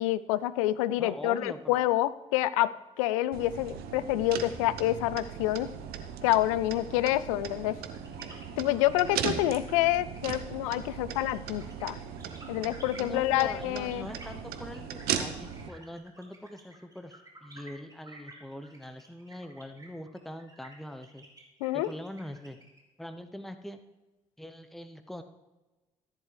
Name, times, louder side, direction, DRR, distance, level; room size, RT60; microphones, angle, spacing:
voice 1, 0.0-2.7 3.0-5.7 6.2-7.8 8.6-12.0 12.5-14.1 21.6-21.9, left 14 dB, 75° left, 16 dB, 0.4 m, -27 dB
voice 2, 1.0-1.9 12.9-21.3 21.7-22.6 23.0-23.8 24.4-25.2, equal, ahead, 9 dB, 0.8 m, -43 dB
sound 1, 3.3-15.7, right 8 dB, 65° right, 0.9 m, -38 dB
sound 2, 7.9-22.8, right 2 dB, 20° right, 3.5 m, -52 dB
14.5 x 10.5 x 3.3 m, 1.1 s
figure-of-eight pair, 45°, 17 cm